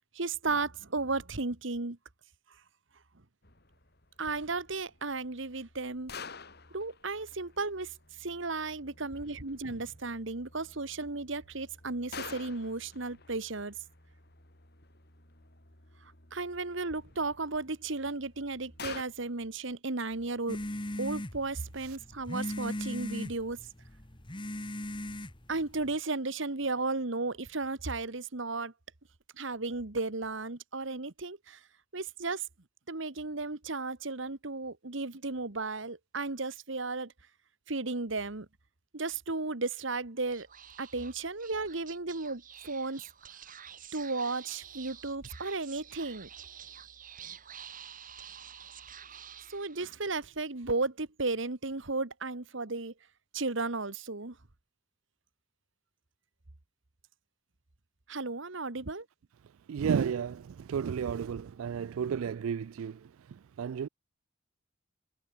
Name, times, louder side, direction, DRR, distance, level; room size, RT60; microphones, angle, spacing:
voice 1, 0.1-2.0 4.2-6.1 6.7-7.9 8.2-13.7 16.3-20.6 21.0-23.6 25.5-28.7 29.4-31.6 31.9-32.4 32.9-37.1 37.7-38.5 38.9-40.5 40.8-43.0 43.9-46.3 49.5-52.9 53.3-54.3 58.1-59.0, right 3 dB, 65° right, 1.5 m, -34 dB
sound 1, 3.4-19.0, left 5 dB, 50° left, 5.0 m, -50 dB
sound 2, 20.5-25.9, left 1 dB, 25° left, 1.7 m, -38 dB
Speech / Whispering, 40.3-50.1, right 9 dB, 40° right, 5.2 m, -49 dB
voice 2, 59.7-63.9, right 7 dB, 85° right, 0.4 m, -33 dB
head